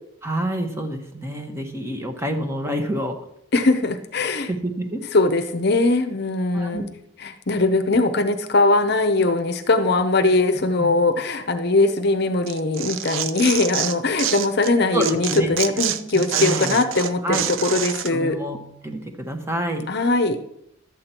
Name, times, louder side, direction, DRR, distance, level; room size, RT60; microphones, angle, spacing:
voice 1, 0.2-3.2 4.5-5.0 6.5-6.9 10.8-10.9 14.9-15.5 16.1-16.8 17.2-17.4 18.1-18.6 18.8-19.9, right 1 dB, 15° right, 4 dB, 1.0 m, -27 dB
voice 2, 3.5-4.5 5.1-6.8 7.2-18.4 19.9-20.4, left 2 dB, 50° left, 8 dB, 0.7 m, -20 dB
Tearing, 12.5-14.7 15.0-18.1, right 10 dB, 70° right, 0.5 m, -27 dB
12.0 x 8.5 x 4.3 m, 0.77 s
head